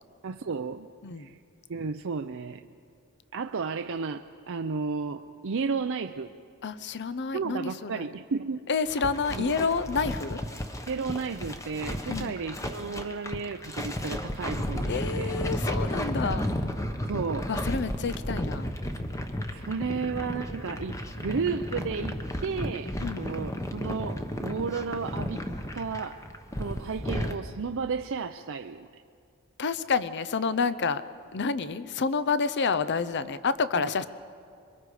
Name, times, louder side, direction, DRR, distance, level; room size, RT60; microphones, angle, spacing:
voice 1, 0.2-0.9 1.2-1.4 1.7-2.6 3.3-6.3 7.3-8.7 9.3-9.5 10.9-15.3 17.1-17.5 19.5-25.5 25.7-26.2 26.6-28.9, right 5 dB, 60° right, 6 dB, 0.5 m, -33 dB
voice 2, 6.6-8.1 8.7-10.4 12.1-12.4 14.9-16.5 17.5-18.7 23.0-23.3 29.6-31.0 31.3-34.1, left 5 dB, 50° left, 14 dB, 0.7 m, -29 dB
sound 1, 8.9-27.4, equal, 15° left, 1.0 m, -33 dB
26.5 x 23.0 x 4.9 m, 2.3 s
head